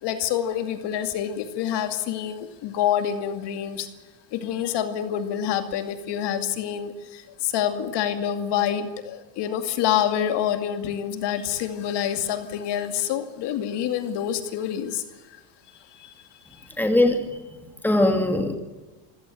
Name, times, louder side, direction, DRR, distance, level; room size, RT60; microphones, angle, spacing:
voice 1, 0.0-3.9 4.3-15.4 15.7-16.1 16.5-16.7, left 10 dB, 55° left, 8 dB, 2.5 m, -27 dB
voice 2, 16.8-17.2 17.8-18.5, left 1 dB, 5° left, 5 dB, 2.7 m, -20 dB
25.0 x 17.0 x 7.8 m, 1.2 s
supercardioid pair, 120°, 50 cm